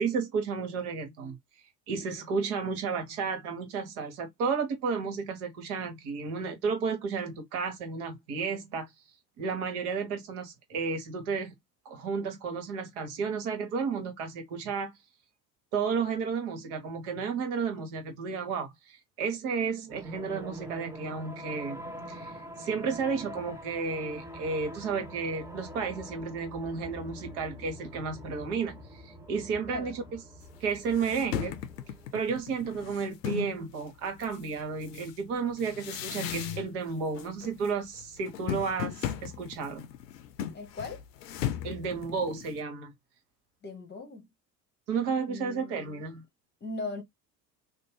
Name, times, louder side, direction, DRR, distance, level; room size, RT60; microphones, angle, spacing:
voice 1, 0.0-1.4 1.9-8.9 9.4-11.5 11.8-14.9 15.7-21.8 22.1-30.0 30.6-31.6 32.1-39.9 41.6-42.9 44.9-46.2, right 5 dB, 60° right, 1.1 m, -32 dB
sound 1, 19.9-32.1, equal, 5° right, 0.6 m, -45 dB
sound 2, 30.5-30.6 30.9-33.6 34.2-36.9 37.1-37.7 38.0-42.6, left 9 dB, 75° left, 0.6 m, -36 dB
voice 2, 40.5-41.0 43.6-44.3 45.3-46.0 46.6-47.0, left 3 dB, 20° left, 0.9 m, -39 dB
2.6 x 2.0 x 3.0 m
figure-of-eight pair, 65°, 50 cm